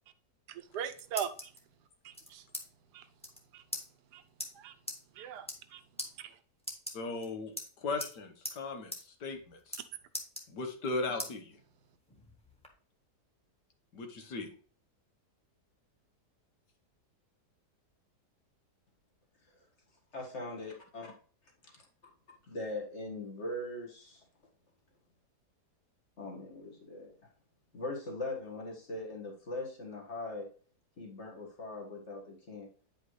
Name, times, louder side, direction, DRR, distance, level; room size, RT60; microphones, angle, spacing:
voice 1, 0.5-1.5 2.0-2.4 2.9-3.0 3.5-3.6 4.1-4.2 4.6-4.7 5.2-5.5 5.7-5.8 6.2-6.3, right 9 dB, 80° right, 10 dB, 1.2 m, -39 dB
sound 1, 0.6-1.6 2.1-2.6 2.9-3.0 3.2-3.4 3.7-3.8 4.4-4.5 4.9-5.0 5.4-5.7 6.0-6.1 6.6-7.2 7.6-8.1 8.4-8.6 8.9-9.0 9.3-9.8 10.1-10.9 11.2-11.3 11.8-12.7, equal, 5° left, 1.0 m, -40 dB
voice 2, 6.9-7.5 7.8-8.9 9.2-9.8 10.5-11.5 13.9-14.5, left 3 dB, 85° left, 5 dB, 1.8 m, -37 dB
voice 3, 20.1-21.1 21.7-21.8 22.5-24.2 26.2-27.1 27.7-30.5 31.0-32.7, left 2 dB, 45° left, 1 dB, 1.8 m, -40 dB
9.0 x 5.2 x 3.2 m, 0.43 s
omnidirectional pair, 1.8 m